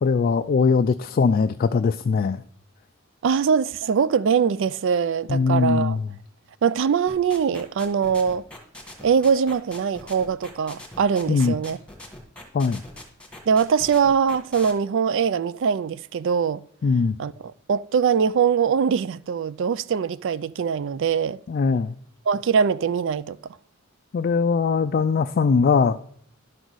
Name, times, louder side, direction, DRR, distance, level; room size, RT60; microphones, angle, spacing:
voice 1, 0.0-2.4 5.3-6.1 11.3-11.5 12.5-12.8 16.8-17.1 21.5-21.9 24.1-26.0, left 5 dB, 45° left, 0.3 m, -21 dB
voice 2, 3.2-6.0 6.6-8.4 9.0-11.8 13.5-16.6 17.2-21.4 22.3-23.4, right 6 dB, 60° right, 0.4 m, -22 dB
sound 1, 7.1-14.7, left 1 dB, 5° left, 1.7 m, -41 dB
11.5 x 4.0 x 6.2 m
head